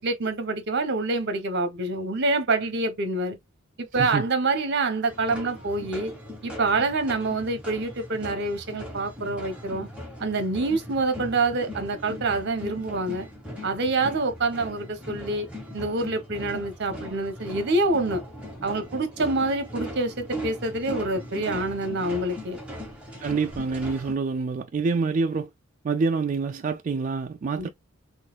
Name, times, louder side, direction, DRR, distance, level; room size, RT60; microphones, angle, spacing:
voice 1, 0.0-3.4 3.8-6.1 6.4-9.9 10.2-13.3 13.6-15.5 15.7-18.2 18.6-22.6 27.6-27.7, right 2 dB, 55° right, 0.9 m, -26 dB
sound 1, 5.1-24.1, equal, 5° right, 1.2 m, -39 dB
voice 2, 23.2-25.5 25.8-27.7, right 4 dB, 40° right, 0.3 m, -26 dB
3.9 x 3.1 x 2.3 m
head